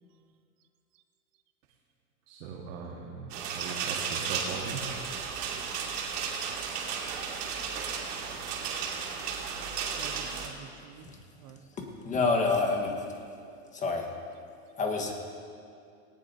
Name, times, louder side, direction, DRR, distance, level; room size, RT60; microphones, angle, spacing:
voice 1, 2.3-4.8, right 5 dB, 60° right, -1 dB, 1.7 m, -39 dB
sound 1, 3.3-10.5, right 6 dB, 80° right, 2.5 m, -34 dB
voice 2, 10.0-11.7 14.4-14.8, right 9 dB, 25° right, 10 dB, 0.4 m, -51 dB
voice 3, 11.8-13.0 13.7-14.1 14.8-15.1, left 3 dB, 15° left, 2 dB, 1.4 m, -28 dB
18.5 x 18.0 x 2.8 m, 2.4 s
supercardioid pair, 155°, 46 cm